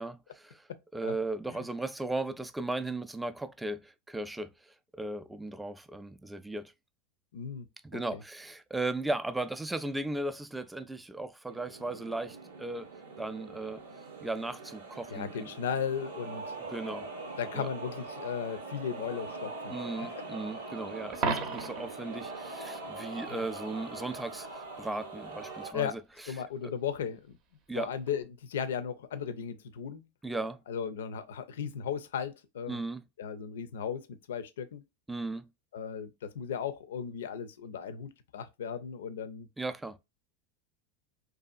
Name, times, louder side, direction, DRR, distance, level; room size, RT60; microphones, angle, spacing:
voice 1, 0.0-0.7 0.9-6.7 7.8-12.9 13.2-13.8 14.2-15.5 16.7-17.1 17.5-17.7 19.7-26.0 26.6-26.7 27.7-27.9 30.2-30.6 32.7-33.0 35.1-35.5 39.6-40.0, right 2 dB, 10° right, 0.3 m, -36 dB
voice 2, 0.7-1.2 1.5-1.7 7.3-7.7 7.9-8.2 15.1-16.6 17.4-19.7 23.3-23.4 25.7-26.0 26.3-27.4 27.7-30.1 30.7-32.8 33.2-34.8 35.7-39.5, left 7 dB, 80° left, 0.4 m, -36 dB
sound 1, 11.5-25.7, right 3 dB, 90° right, 0.7 m, -42 dB
Coin (dropping), 21.1-22.0 28.1-28.2, right 4 dB, 50° right, 0.6 m, -32 dB
2.7 x 2.3 x 2.4 m
hypercardioid pair, 95°, 0 cm